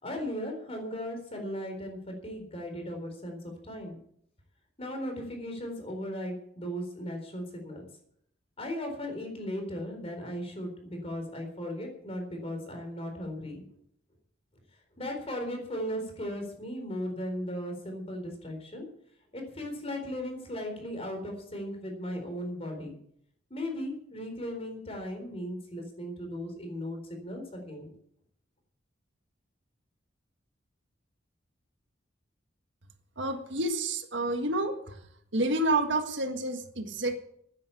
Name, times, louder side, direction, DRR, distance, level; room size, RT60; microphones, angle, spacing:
voice 1, 0.0-4.0 4.8-7.8 8.6-13.6 15.0-18.9 19.3-22.9 23.5-28.0, equal, 30° left, 4 dB, 4.2 m, -37 dB
voice 2, 33.2-35.0 35.3-37.2, right 2 dB, 65° right, 6 dB, 1.7 m, -29 dB
13.5 x 9.8 x 8.5 m, 0.69 s
head